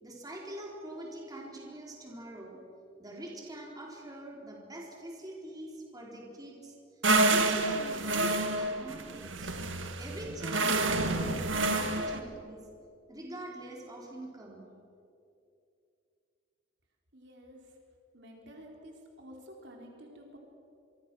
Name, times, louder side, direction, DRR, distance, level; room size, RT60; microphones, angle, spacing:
voice 1, 0.0-2.6 3.0-6.8 7.2-9.6 10.0-12.7 13.1-14.7, right 1 dB, 20° right, -2 dB, 4.2 m, -44 dB
sound 1, 7.0-12.2, right 2 dB, 85° right, 2.0 m, -28 dB
voice 2, 17.1-17.7 18.1-20.4, equal, 65° right, 0 dB, 4.1 m, -50 dB
26.5 x 24.0 x 6.3 m, 2.6 s
head